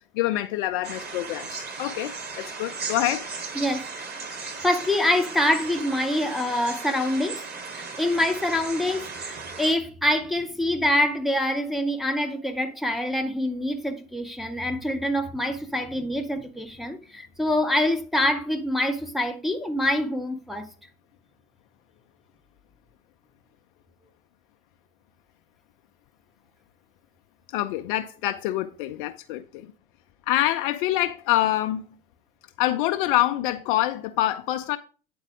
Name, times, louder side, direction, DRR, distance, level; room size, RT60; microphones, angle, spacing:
voice 1, 0.1-3.3 27.5-29.7 30.3-31.8 32.6-34.8, left 14 dB, 40° left, 0.4 m, -26 dB
sound 1, 0.8-9.7, right 4 dB, 25° right, 1.2 m, -36 dB
voice 2, 3.5-4.1 4.6-7.5 7.7-20.7, left 1 dB, ahead, 0.6 m, -25 dB
8.6 x 4.0 x 4.8 m
figure-of-eight pair, 75°, 40 cm